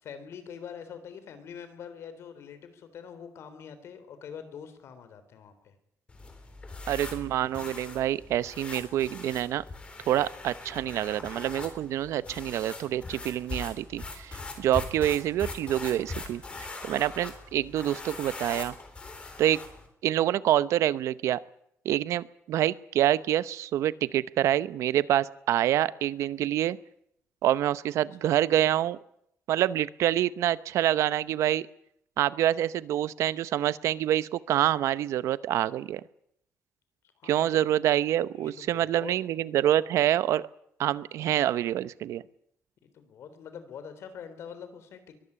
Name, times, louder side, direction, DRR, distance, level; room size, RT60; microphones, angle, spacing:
voice 1, 0.0-5.7 37.2-37.6 38.3-39.1 42.8-45.1, left 7 dB, 65° left, 11 dB, 3.7 m, -44 dB
sound 1, 6.1-19.9, left 3 dB, 25° left, 3.9 m, -41 dB
voice 2, 6.9-9.6 10.1-16.4 16.9-18.7 19.4-19.6 20.0-21.4 21.8-26.8 27.4-29.0 29.5-31.7 32.2-36.0 37.2-40.5 40.8-42.2, right 12 dB, 90° right, 17 dB, 0.8 m, -26 dB
22.5 x 14.5 x 9.9 m, 0.74 s
cardioid pair, 165°, 5 cm